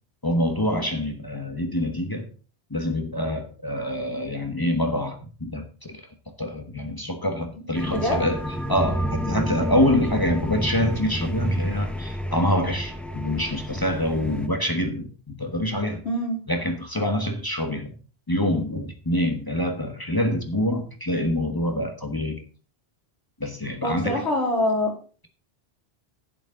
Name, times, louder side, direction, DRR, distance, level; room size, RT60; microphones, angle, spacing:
voice 1, 0.2-2.3 2.7-6.0 6.4-8.4 8.7-16.0 16.5-17.9 18.3-22.4 23.4-24.2, left 1 dB, 20° left, 4 dB, 1.3 m, -26 dB
sound 1, 7.7-14.5, equal, ahead, 0.8 m, -29 dB
voice 2, 7.9-8.2 16.0-16.4 23.8-24.9, left 1 dB, 80° left, -2 dB, 3.7 m, -24 dB
11.5 x 8.4 x 3.8 m, 0.38 s
omnidirectional pair, 1.1 m